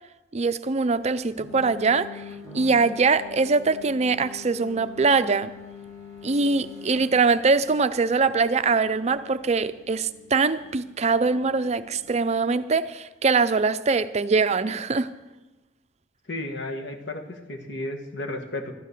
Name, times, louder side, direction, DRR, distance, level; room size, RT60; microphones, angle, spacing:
voice 1, 0.3-2.2 2.5-5.5 6.2-15.1, right 4 dB, 35° right, 0.5 m, -23 dB
sound 1, 1.4-12.2, left 5 dB, 15° left, 2.9 m, -45 dB
voice 2, 16.3-18.7, left 1 dB, 60° left, 1.7 m, -33 dB
13.0 x 9.8 x 6.7 m
head